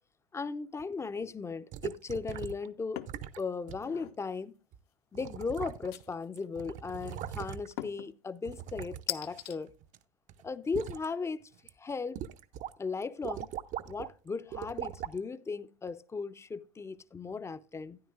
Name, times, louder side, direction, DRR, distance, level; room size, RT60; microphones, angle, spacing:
voice 1, 0.3-3.0 3.4-4.5 5.1-9.7 10.4-11.4 11.8-12.2 12.8-13.5 13.9-18.0, left 4 dB, 15° left, 0.4 m, -37 dB
sound 1, 1.7-2.7 3.1-3.4 3.7-3.8 4.7-4.8 5.1-6.1 6.4-7.8 8.4-10.0 10.3-11.1 11.5-11.7 12.2-12.7 13.0-14.1 14.5-15.2 15.9-16.0, right 10 dB, 40° right, 0.5 m, -41 dB
sound 2, 3.0-3.2 3.7-4.2 5.9-6.4 7.8-8.1 9.1-9.6, left 13 dB, 55° left, 0.6 m, -39 dB
12.5 x 9.9 x 2.5 m
hypercardioid pair, 85°, 19 cm